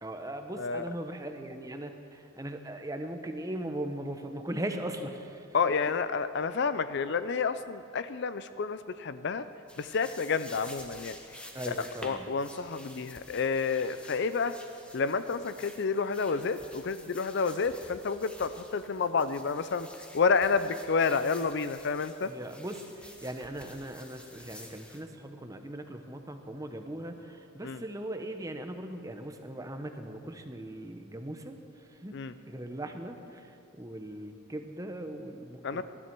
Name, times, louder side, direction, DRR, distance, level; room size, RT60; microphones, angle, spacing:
voice 1, 0.0-5.5 11.5-12.3 22.3-32.2 32.5-35.8, right 1 dB, 15° right, 6 dB, 0.8 m, -39 dB
voice 2, 5.5-9.5 9.8-11.2 11.7-14.5 14.9-19.9 20.1-22.3 27.6-27.8 32.1-32.3 35.6-35.8, left 5 dB, 55° left, 13 dB, 0.5 m, -30 dB
sound 1, 9.7-25.0, left 1 dB, 5° left, 1.0 m, -50 dB
19.0 x 12.5 x 4.6 m, 2.6 s
head